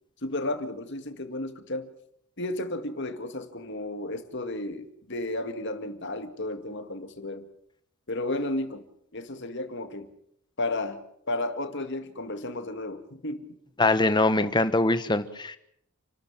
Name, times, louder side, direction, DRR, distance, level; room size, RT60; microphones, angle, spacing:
voice 1, 0.2-1.9 2.4-7.5 8.1-8.8 9.1-10.1 10.6-11.0 11.3-13.5, left 2 dB, 55° left, 2.1 m, -33 dB
voice 2, 13.8-15.6, left 2 dB, 20° left, 1.3 m, -23 dB
29.5 x 13.0 x 7.4 m
head